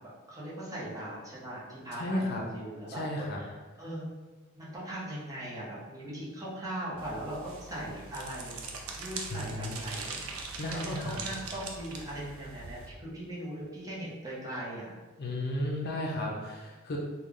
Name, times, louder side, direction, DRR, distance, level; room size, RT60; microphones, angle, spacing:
voice 1, 0.3-4.1 4.5-8.6 9.0-10.2 10.7-14.9, right 1 dB, 15° right, -7 dB, 0.9 m, -39 dB
voice 2, 2.0-2.4 2.9-3.4 9.3-9.8 10.6-11.2 15.2-17.0, left 1 dB, 50° left, -2 dB, 0.5 m, -33 dB
sound 1, 7.0-12.9, right 4 dB, 90° right, 0.5 m, -42 dB
3.3 x 2.2 x 3.6 m, 1.3 s
head